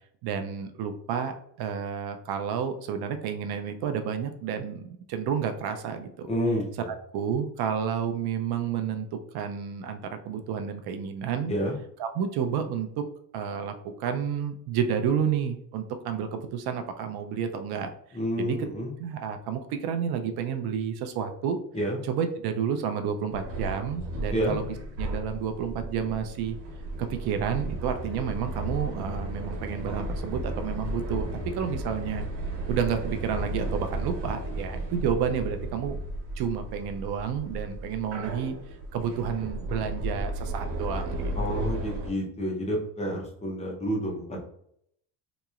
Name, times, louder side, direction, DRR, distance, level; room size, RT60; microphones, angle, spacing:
voice 1, 0.2-1.3 1.6-6.3 6.9-11.5 12.0-13.0 13.3-18.7 19.0-21.6 22.0-24.6 25.0-26.6 27.0-31.3 31.6-32.3 32.7-36.0 36.4-38.5 38.9-41.6, right 7 dB, 65° right, 7 dB, 0.6 m, -30 dB
voice 2, 6.3-6.9 11.5-11.7 18.1-18.9 21.7-22.0 24.3-24.5 41.4-44.3, equal, 15° left, -1 dB, 0.7 m, -29 dB
sound 1, 23.3-42.1, right 1 dB, 85° right, 1.1 m, -34 dB
4.0 x 2.9 x 2.4 m, 0.69 s
cardioid pair, 145°, 42 cm